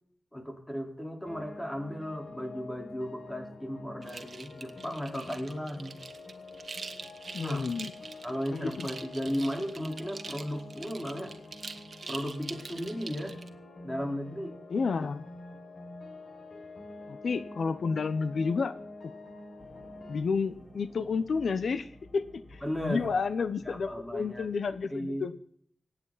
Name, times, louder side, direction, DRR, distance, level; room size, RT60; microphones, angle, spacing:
voice 1, 0.3-5.9 7.4-7.7 8.2-11.3 12.1-13.4 13.8-14.6 22.6-23.1 23.6-24.5 24.9-25.3, equal, 10° left, 2 dB, 4.2 m, -35 dB
sound 1, 1.2-20.2, left 2 dB, 60° left, 5.7 m, -47 dB
sound 2, 4.0-13.5, right 4 dB, 65° right, 1.7 m, -44 dB
voice 2, 7.3-7.9 8.5-8.9 14.7-15.3 17.1-18.8 20.1-25.3, left 5 dB, 85° left, 12 dB, 0.9 m, -31 dB
sound 3, 19.6-24.9, left 1 dB, 35° left, 5.0 m, -54 dB
24.5 x 9.8 x 4.2 m, 0.63 s
cardioid pair, 65°, 0 cm